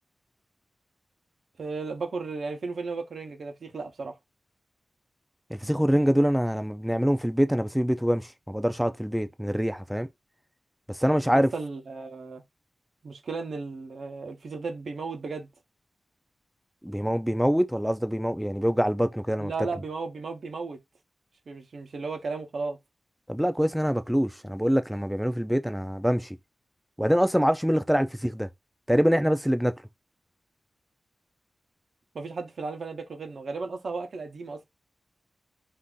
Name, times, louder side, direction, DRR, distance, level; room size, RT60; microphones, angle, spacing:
voice 1, 1.6-4.1 11.3-12.4 13.0-15.5 19.4-20.8 21.5-22.8 32.1-34.6, right 4 dB, 80° right, 0.7 m, -35 dB
voice 2, 5.5-10.1 10.9-11.5 16.8-19.5 23.3-26.4 27.0-28.5 28.9-29.7, equal, ahead, 0.3 m, -25 dB
2.6 x 2.4 x 3.7 m
wide cardioid pair, 70°, 0 cm